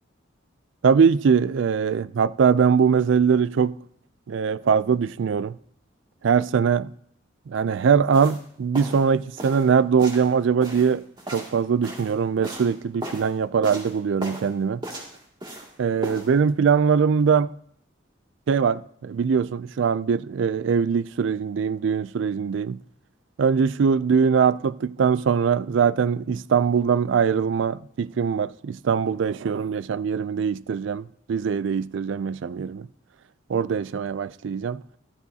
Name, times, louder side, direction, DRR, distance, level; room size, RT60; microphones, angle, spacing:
voice 1, 0.8-3.7 4.3-5.6 6.2-6.9 7.5-11.0 11.3-14.8 15.8-17.5 18.5-22.8 23.4-32.9 33.5-34.8, right 6 dB, 70° right, 0.4 m, -22 dB
sound 1, 8.1-8.4 8.7-9.0 9.4-9.7 10.0-10.3 10.6-12.1 12.4-12.7 13.0-13.3 13.6-13.9 14.2-14.5 14.8-15.7 16.0-16.3, right 1 dB, 25° right, 2.3 m, -36 dB
14.5 x 13.0 x 2.8 m
head